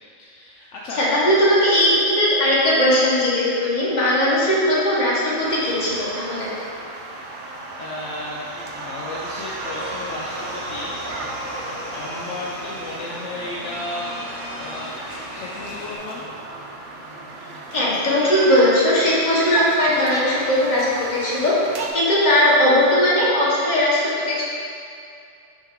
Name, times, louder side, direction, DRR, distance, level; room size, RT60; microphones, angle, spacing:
voice 1, 0.2-1.0 7.8-8.5 8.7-11.0 11.9-14.1 14.6-14.9 15.3-16.2, left 2 dB, 70° left, -5 dB, 1.0 m, -34 dB
voice 2, 1.0-6.5 17.7-21.6 21.9-24.4, left 1 dB, 35° left, -7 dB, 1.5 m, -18 dB
sound 1, 5.3-21.9, right 2 dB, 50° right, 0.7 m, -34 dB
sound 2, 9.6-16.0, equal, 25° right, 1.7 m, -35 dB
6.0 x 5.6 x 3.7 m, 2.5 s
omnidirectional pair, 1.4 m